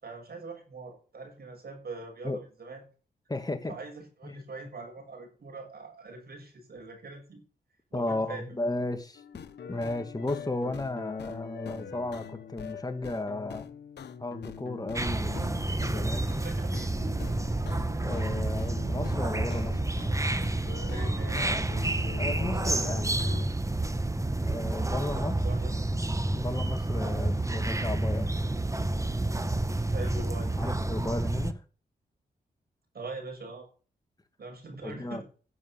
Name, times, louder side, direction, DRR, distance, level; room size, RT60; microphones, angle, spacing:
voice 1, 0.0-2.8 3.7-7.4 7.9-8.5 16.3-16.9 20.9-21.4 25.1-25.7 29.9-30.5 32.9-33.7 34.4-35.2, right 3 dB, 65° right, 6.8 m, -42 dB
voice 2, 3.3-3.8 4.2-4.4 7.9-9.2 9.7-13.7 14.2-16.3 18.0-19.8 22.2-23.2 24.4-25.3 26.3-28.3 30.6-31.6 34.8-35.2, left 2 dB, 20° left, 2.4 m, -34 dB
sound 1, 9.1-16.5 16.7-20.2 20.4-23.5, left 8 dB, 85° left, 1.3 m, -43 dB
sound 2, 15.0-31.5, right 2 dB, 20° right, 1.5 m, -29 dB
11.0 x 7.6 x 7.4 m
cardioid pair, 60°, 17 cm